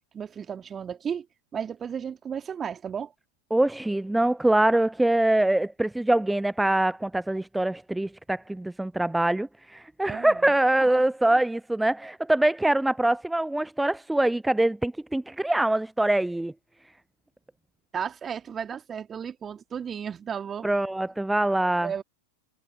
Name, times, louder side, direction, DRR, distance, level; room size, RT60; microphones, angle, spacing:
voice 1, 0.1-1.3 1.5-3.1 10.1-10.5 10.9-11.0 17.9-20.7 21.8-22.0, right 7 dB, 20° right, 2.5 m, -34 dB
voice 2, 3.5-16.5 20.6-21.9, right 1 dB, 5° right, 0.3 m, -24 dB
figure-of-eight pair, 90°, 0 cm